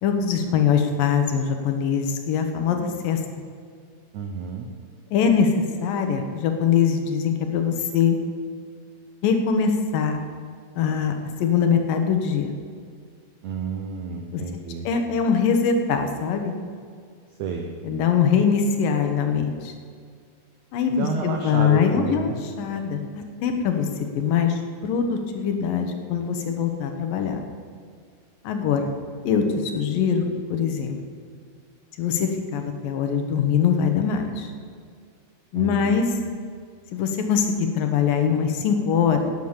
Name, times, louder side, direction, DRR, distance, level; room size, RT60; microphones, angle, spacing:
voice 1, 0.0-2.8 3.0-3.2 5.1-5.5 5.8-8.2 9.2-10.2 10.8-12.5 14.3-14.4 14.8-16.5 17.8-19.7 20.7-23.9 24.2-27.5 28.4-28.9 29.2-31.0 32.0-34.5 35.5-36.1 36.9-39.3, left 7 dB, 70° left, 5 dB, 2.5 m, -22 dB
voice 2, 4.1-4.7 13.4-14.9 17.4-17.7 20.9-22.3 35.5-35.9, right 5 dB, 85° right, 3 dB, 1.6 m, -30 dB
11.5 x 9.6 x 7.1 m, 2.1 s
omnidirectional pair, 4.5 m